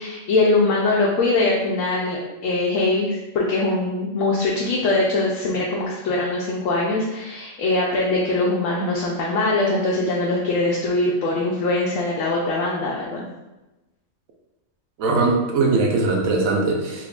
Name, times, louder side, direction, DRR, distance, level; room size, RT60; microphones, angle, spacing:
voice 1, 0.0-13.2, left 2 dB, 75° left, -3 dB, 0.9 m, -22 dB
voice 2, 15.0-17.1, right 3 dB, 80° right, 0 dB, 1.1 m, -20 dB
3.5 x 2.9 x 2.4 m, 1.0 s
omnidirectional pair, 1.4 m